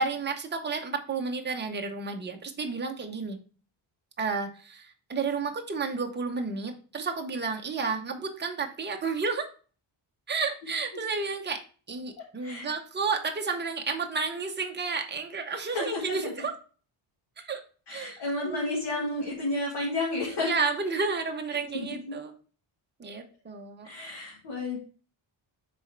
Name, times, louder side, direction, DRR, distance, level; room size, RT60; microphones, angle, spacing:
voice 1, 0.0-3.4 4.2-9.5 10.3-11.6 11.9-16.6 17.4-17.6 17.9-19.3 20.3-22.3 23.0-23.9, right 4 dB, 20° right, 4 dB, 0.8 m, -31 dB
voice 2, 15.7-16.3 17.9-20.5 23.8-24.8, left 2 dB, 55° left, -2 dB, 1.6 m, -31 dB
6.2 x 4.2 x 4.4 m, 0.39 s
wide cardioid pair, 165°, 48 cm